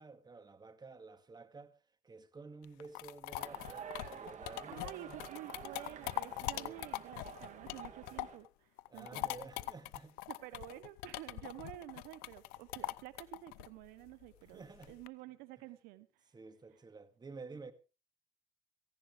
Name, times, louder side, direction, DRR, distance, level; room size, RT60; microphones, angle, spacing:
voice 1, 0.0-1.8 2.0-5.2 6.5-6.8 8.9-10.2 14.4-15.0 16.3-17.7, right 4 dB, 30° right, 2.2 m, -52 dB
sound 1, 2.6-8.5 8.8-15.1, left 19 dB, 90° left, 0.6 m, -42 dB
sound 2, 3.4-8.4, right 8 dB, 55° right, 2.7 m, -50 dB
voice 2, 4.7-9.3 9.6-9.7 10.3-16.1, right 15 dB, 90° right, 1.1 m, -50 dB
17.5 x 15.5 x 3.5 m
supercardioid pair, 80°, 15 cm